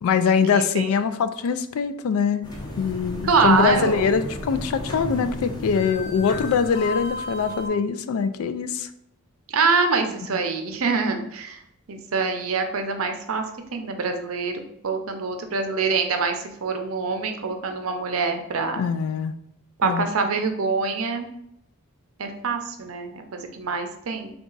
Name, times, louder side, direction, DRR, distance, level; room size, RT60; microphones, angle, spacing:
voice 1, 0.0-2.4 2.8-8.9 10.3-10.4 18.8-19.3 19.8-20.0, left 6 dB, 75° left, 11 dB, 0.3 m, -23 dB
voice 2, 0.5-0.9 3.2-4.1 9.5-11.6 11.9-13.4 13.7-18.8 19.8-21.3 22.2-24.3, right 4 dB, 70° right, 6 dB, 0.6 m, -25 dB
sound 1, 2.4-7.7, left 1 dB, 20° left, 0.6 m, -33 dB
3.9 x 2.3 x 3.8 m, 0.78 s
head